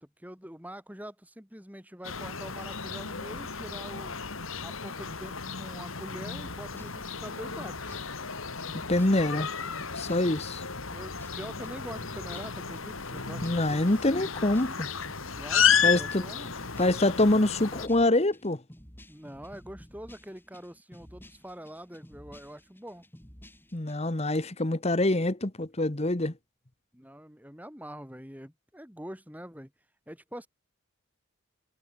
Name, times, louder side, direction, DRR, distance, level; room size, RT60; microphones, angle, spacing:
voice 1, 0.0-4.1 4.6-8.0 10.9-13.9 15.4-16.5 19.0-23.1 26.9-29.7 30.1-30.5, equal, 10° right, 7.9 m, -44 dB
sound 1, 2.0-17.9, left 7 dB, 80° left, 2.7 m, -32 dB
sound 2, 6.2-23.9, equal, 10° left, 4.8 m, -52 dB
voice 2, 8.9-9.5 9.9-10.6 13.4-14.9 15.8-16.2 16.8-18.6 23.7-26.3, left 1 dB, 30° left, 1.3 m, -25 dB
head